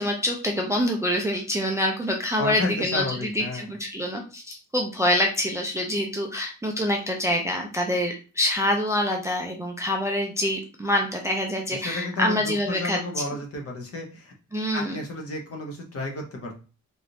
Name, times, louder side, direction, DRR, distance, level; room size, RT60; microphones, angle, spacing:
voice 1, 0.0-13.0 14.5-15.0, left 1 dB, 10° right, 1 dB, 0.3 m, -26 dB
voice 2, 2.4-3.7 11.7-14.3 14.7-16.5, left 2 dB, 50° left, 2 dB, 0.8 m, -32 dB
3.3 x 2.5 x 2.7 m, 0.34 s
wide cardioid pair, 165°, 31 cm